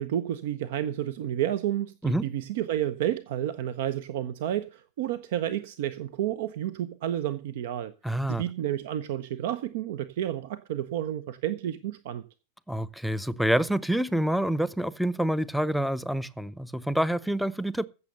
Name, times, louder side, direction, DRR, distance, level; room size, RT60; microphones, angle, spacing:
voice 1, 0.0-12.2, right 11 dB, 55° right, 0.7 m, -31 dB
voice 2, 8.0-8.4 12.7-17.9, right 1 dB, ahead, 0.6 m, -27 dB
15.5 x 6.8 x 6.5 m
figure-of-eight pair, 90°, 0 cm